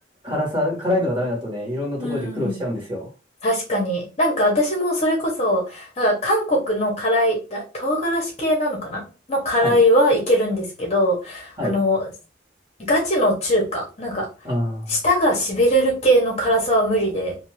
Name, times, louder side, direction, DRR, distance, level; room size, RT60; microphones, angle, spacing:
voice 1, 0.2-3.0 9.6-9.8 11.6-11.7 14.4-15.0, left 1 dB, 25° right, -3 dB, 1.4 m, -25 dB
voice 2, 2.0-2.6 3.4-9.0 9.3-12.1 12.9-14.3 14.9-17.4, equal, 35° left, -2 dB, 0.9 m, -21 dB
2.6 x 2.5 x 3.1 m, 0.32 s
head